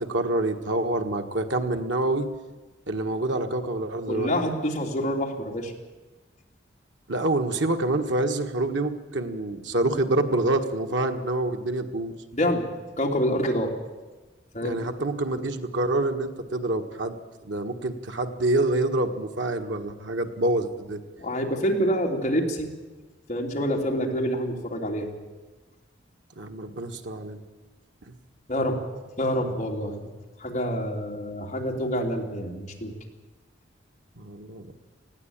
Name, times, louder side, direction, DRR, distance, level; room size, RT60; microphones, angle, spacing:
voice 1, 0.0-2.3 2.9-4.3 7.1-12.1 14.6-17.2 17.5-21.0 26.4-27.4 29.8-29.9 34.2-34.7, right 2 dB, 85° right, 5 dB, 1.6 m, -27 dB
voice 2, 4.1-5.7 12.3-12.7 13.0-13.7 14.5-14.8 21.2-22.7 23.3-25.1 28.5-28.8 29.2-30.1 30.4-32.9, equal, 40° left, 0 dB, 3.1 m, -27 dB
19.5 x 15.5 x 8.8 m, 1.2 s
head